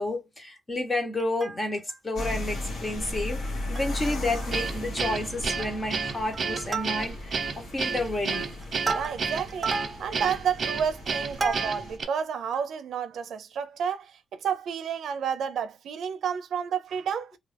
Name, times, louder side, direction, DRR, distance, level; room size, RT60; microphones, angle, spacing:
voice 1, 0.0-3.4 3.7-8.5, left 2 dB, 20° left, 1.1 m, -30 dB
Plucked string instrument, 1.2-2.0 2.4-2.5 2.8-3.0 3.4-4.1 4.4-4.5 4.9-5.2 5.6-6.0 6.3-7.4 7.9-12.0 12.5-12.6, right 3 dB, 25° right, 0.4 m, -35 dB
sound 1, 2.2-12.0, left 1 dB, 65° left, 1.1 m, -36 dB
Guitar, 4.5-12.0, right 5 dB, 50° right, 0.9 m, -31 dB
voice 2, 8.9-9.7 10.0-17.3, right 7 dB, 85° right, 0.5 m, -30 dB
2.6 x 2.4 x 3.3 m
wide cardioid pair, 145°, 0 cm